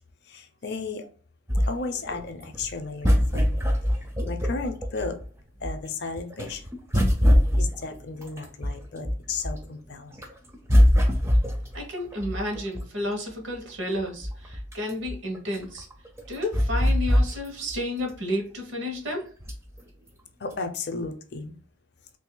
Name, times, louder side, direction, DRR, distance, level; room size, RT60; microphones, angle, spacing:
voice 1, 0.3-1.1 1.7-3.6 4.2-5.2 5.6-6.7 7.6-10.2 20.4-21.6, left 4 dB, 55° left, 7 dB, 0.5 m, -34 dB
sound 1, 1.5-5.2 5.6-9.7 10.1-13.1 13.6-13.7 14.0-17.8 18.1-18.2 19.4-19.8 20.5-20.6, equal, 15° right, 0.4 m, -23 dB
voice 2, 11.7-15.9 16.3-19.3, left 1 dB, 65° right, 1 dB, 1.1 m, -31 dB
2.8 x 2.6 x 3.7 m, 0.41 s
head